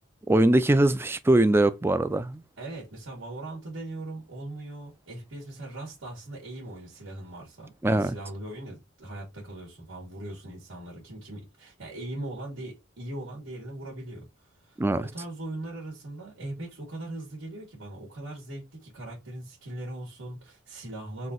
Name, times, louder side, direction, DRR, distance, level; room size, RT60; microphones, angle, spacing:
voice 1, 0.3-2.4 7.8-8.1 14.8-15.1, right 1 dB, 10° right, 0.3 m, -22 dB
voice 2, 2.6-21.3, right 1 dB, 80° right, 1.9 m, -40 dB
4.0 x 2.7 x 3.7 m
head